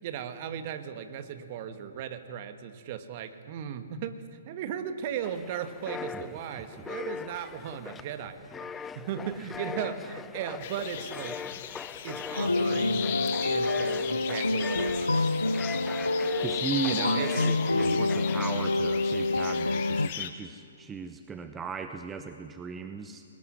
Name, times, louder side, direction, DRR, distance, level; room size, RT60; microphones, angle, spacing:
voice 1, 0.0-11.4 12.0-15.3 16.3-16.4 16.8-17.5, right 8 dB, 40° right, 10 dB, 1.7 m, -37 dB
sound 1, 5.2-18.7, left 6 dB, 15° left, 0.6 m, -41 dB
sound 2, 10.6-20.3, left 10 dB, 45° left, 1.6 m, -38 dB
sound 3, 12.4-20.1, left 2 dB, 90° left, 0.6 m, -27 dB
voice 2, 16.4-23.2, right 5 dB, 15° right, 8 dB, 0.9 m, -37 dB
21.5 x 19.5 x 9.8 m, 2.6 s
figure-of-eight pair, 125°, 0 cm